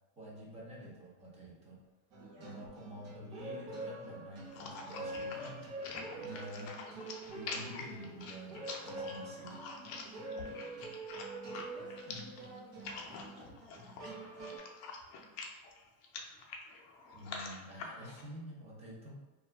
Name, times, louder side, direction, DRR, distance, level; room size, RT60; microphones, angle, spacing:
voice 1, 0.2-1.8 2.4-5.7 6.1-6.8 7.3-9.6 10.0-10.1 12.1-12.2 17.1-19.1, equal, 15° right, -4 dB, 0.5 m, -48 dB
sound 1, 2.1-14.6, right 2 dB, 40° right, 0.8 m, -45 dB
voice 2, 2.2-2.6 6.0-7.6 9.7-10.6 11.7-11.9 12.1-13.9 14.2-14.6 15.2-15.3, right 4 dB, 70° right, -8 dB, 0.9 m, -56 dB
sound 2, 4.5-18.2, left 4 dB, 45° left, 0.5 m, -46 dB
2.4 x 2.4 x 3.3 m, 1.2 s
cardioid pair, 160°, 39 cm